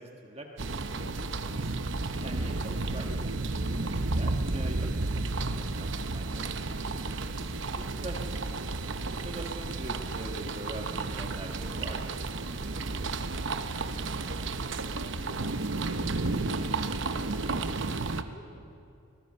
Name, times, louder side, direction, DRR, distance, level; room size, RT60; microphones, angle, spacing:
voice 1, 0.0-1.8 2.2-3.3 3.6-4.9 5.3-7.0 7.4-8.7 9.1-13.2, right 2 dB, 30° right, 2 dB, 1.4 m, -43 dB
sound 1, 0.6-18.2, right 3 dB, 65° right, 0.9 m, -32 dB
voice 2, 2.1-2.5 13.6-14.4 14.7-18.8, equal, 35° left, 2 dB, 3.1 m, -51 dB
25.0 x 19.5 x 5.5 m, 2.6 s
head